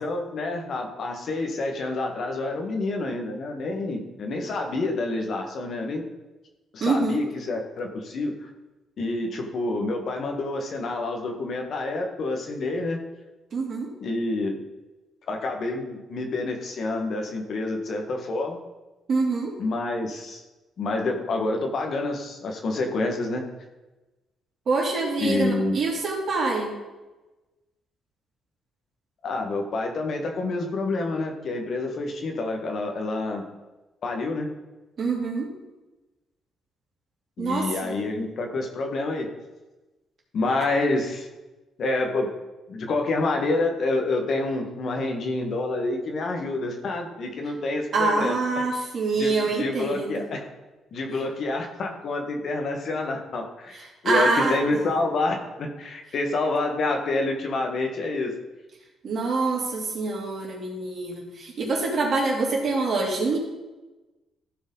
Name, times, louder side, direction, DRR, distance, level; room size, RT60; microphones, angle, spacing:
voice 1, 0.0-6.0 6.7-8.5 9.0-13.0 14.0-14.6 15.3-18.6 19.6-20.4 20.8-23.5 25.2-25.8 29.2-33.5 34.0-34.5 37.4-39.3 40.3-41.3 41.8-42.3 42.7-48.4 49.1-50.5 50.9-53.8 54.0-58.4, left 2 dB, 60° left, 3 dB, 1.6 m, -28 dB
voice 2, 6.8-7.2 13.5-13.9 19.1-19.6 24.7-26.7 35.0-35.5 37.4-37.9 47.9-50.3 54.0-54.8 59.0-63.4, right 3 dB, 55° right, -2 dB, 2.8 m, -25 dB
14.0 x 5.2 x 4.0 m, 1.1 s
cardioid pair, 90°, 0 cm